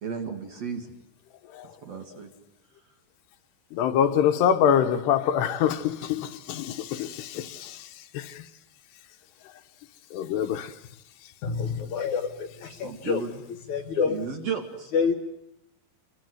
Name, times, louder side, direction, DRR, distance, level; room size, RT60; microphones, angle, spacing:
voice 1, 0.0-0.9 1.8-2.3 12.7-13.3 14.1-14.9, right 5 dB, 45° right, 2.7 m, -33 dB
voice 2, 3.7-8.5 10.1-10.7, left 9 dB, 80° left, 3.3 m, -25 dB
voice 3, 11.4-13.2 13.7-14.2 14.9-15.1, left 5 dB, 55° left, 2.4 m, -27 dB
28.0 x 23.5 x 7.9 m
omnidirectional pair, 4.8 m